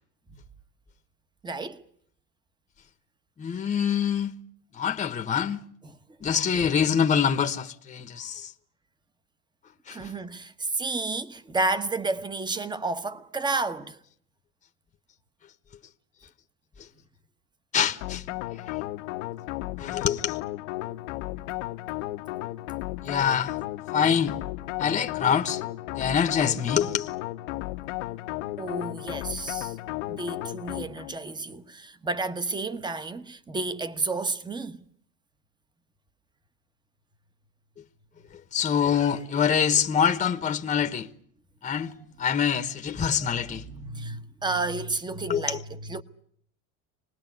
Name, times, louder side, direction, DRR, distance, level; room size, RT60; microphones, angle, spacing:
voice 1, 1.4-1.8 5.8-6.0 8.1-8.3 9.9-14.0 28.6-29.7 30.1-34.8 42.5-42.6 43.5-46.0, right 3 dB, 10° right, 1.2 m, -31 dB
voice 2, 3.4-4.3 4.7-5.6 6.2-8.5 9.9-10.1 16.8-16.9 17.7-18.2 18.5-18.8 19.8-20.4 23.0-23.6 23.9-24.3 24.8-25.6 25.9-27.1 38.5-41.1 41.6-43.6 45.3-45.6, left 7 dB, 20° left, 1.2 m, -25 dB
sound 1, 18.0-31.2, left 17 dB, 80° left, 1.3 m, -34 dB
25.5 x 20.0 x 9.4 m
supercardioid pair, 130°, 35 cm